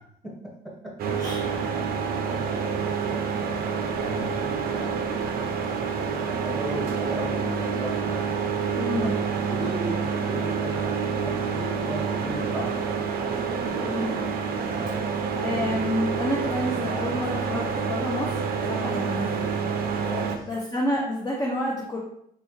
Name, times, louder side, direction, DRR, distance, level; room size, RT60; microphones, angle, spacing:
voice 1, 0.2-1.2 3.9-4.9 6.2-8.3 9.0-12.9 13.2-14.0 14.8-15.1 18.8-19.0 20.0-20.5, equal, ahead, -4 dB, 1.2 m, -36 dB
sound 1, 1.0-20.4, right 6 dB, 60° right, 0.5 m, -28 dB
voice 2, 8.7-9.2 13.8-14.2 15.0-19.4 20.5-22.0, left 1 dB, 20° left, -3 dB, 0.6 m, -29 dB
4.0 x 2.4 x 3.0 m, 0.71 s
cardioid pair, 110°, 17 cm